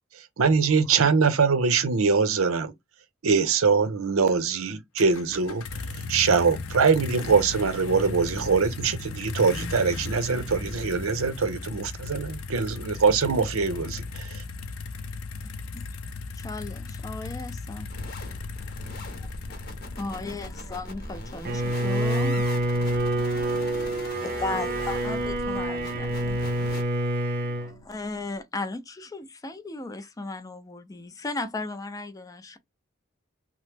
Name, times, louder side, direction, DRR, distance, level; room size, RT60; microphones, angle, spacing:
voice 1, 0.2-2.7 3.2-5.6 6.1-14.4, right 5 dB, 90° right, 0.6 m, -23 dB
sound 1, 5.0-20.9, left 3 dB, 85° left, 0.5 m, -36 dB
voice 2, 16.3-17.9 19.8-22.5 24.2-26.4 27.6-32.6, left 3 dB, 15° left, 0.4 m, -36 dB
sound 2, 17.9-26.8, left 1 dB, 50° left, 0.7 m, -40 dB
voice 3, 19.1-21.0 22.3-22.4 25.7-25.8 27.3-28.0, right 2 dB, 5° right, 0.7 m, -56 dB
Bowed string instrument, 21.4-27.7, right 1 dB, 50° right, 0.5 m, -27 dB
3.0 x 2.0 x 3.2 m
head